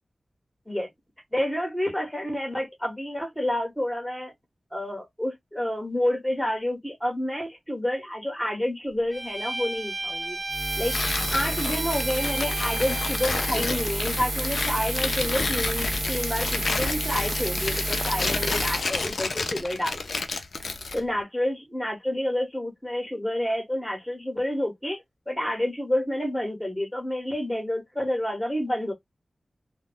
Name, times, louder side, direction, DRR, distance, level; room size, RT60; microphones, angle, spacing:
voice 1, 1.3-4.3 4.7-10.4 10.8-11.0 11.3-20.2 20.9-25.0 25.3-28.9, left 1 dB, 5° left, 1.0 m, -29 dB
Bowed string instrument, 9.1-13.8, right 2 dB, 30° right, 0.6 m, -34 dB
Buzz, 10.5-18.8, right 1 dB, 80° right, 1.1 m, -30 dB
Tearing, 10.9-21.0, left 3 dB, 75° left, 0.4 m, -31 dB
2.3 x 2.0 x 3.3 m
wide cardioid pair, 85°, 0 cm